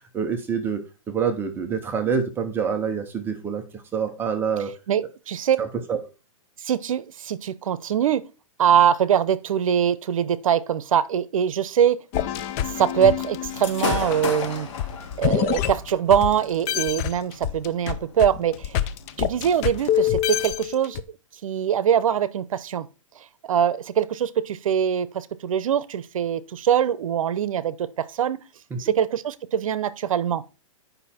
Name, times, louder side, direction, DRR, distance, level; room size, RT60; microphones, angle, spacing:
voice 1, 0.1-4.7 5.6-6.0 28.7-28.8, right 6 dB, 10° right, 0.8 m, -26 dB
voice 2, 4.9-5.6 6.6-8.2 8.6-12.0 12.7-14.7 15.2-18.7 19.2-21.0 21.4-22.9 23.4-28.4 28.8-30.4, right 9 dB, 75° right, 0.8 m, -23 dB
sound 1, 12.1-16.3 16.7-21.0, left 12 dB, 25° left, 0.5 m, -26 dB
Gunshot gunfire / Fireworks, 13.5-20.5, left 4 dB, 60° left, 3.2 m, -35 dB
9.1 x 5.6 x 4.3 m
hypercardioid pair, 160°, 17 cm